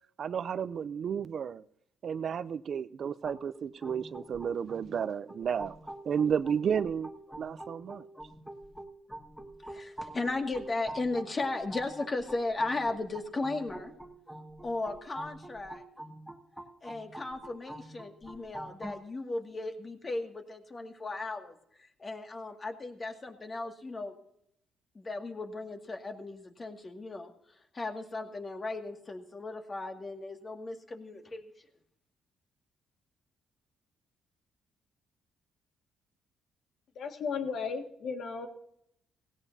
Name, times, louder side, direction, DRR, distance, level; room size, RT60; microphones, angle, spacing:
voice 1, 0.2-1.6 2.0-5.8 6.0-7.1 7.4-8.1, right 7 dB, 55° right, 16 dB, 0.5 m, -32 dB
sound 1, 3.2-19.0, right 1 dB, ahead, 1.8 m, -46 dB
voice 2, 9.7-13.9 14.6-15.8 16.8-21.6 22.0-24.1 24.9-27.3 27.7-31.5, left 2 dB, 30° left, 4 dB, 2.1 m, -36 dB
voice 3, 37.0-38.5, left 5 dB, 70° left, 5 dB, 2.0 m, -35 dB
17.0 x 17.0 x 2.8 m, 0.71 s
cardioid pair, 90°, 0 cm